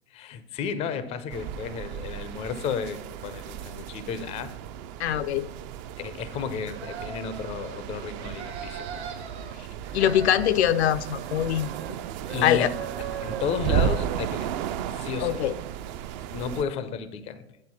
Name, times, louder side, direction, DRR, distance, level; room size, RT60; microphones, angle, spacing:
voice 1, 0.1-4.5 6.0-8.9 12.3-12.7 13.0-14.5 14.9-15.4 16.3-17.4, left 6 dB, 20° left, 13 dB, 0.4 m, -33 dB
sound 1, 1.3-16.6, right 9 dB, 45° right, 0.4 m, -34 dB
voice 2, 5.0-5.5 9.9-11.7 12.4-12.7 15.2-15.5, left 11 dB, 80° left, 13 dB, 0.5 m, -23 dB
sound 2, 6.6-7.8 8.2-9.5 9.8-12.0 12.2-14.2, right 7 dB, 85° right, 1.5 m, -39 dB
8.7 x 3.9 x 5.9 m, 0.84 s
hypercardioid pair, 130°, 32 cm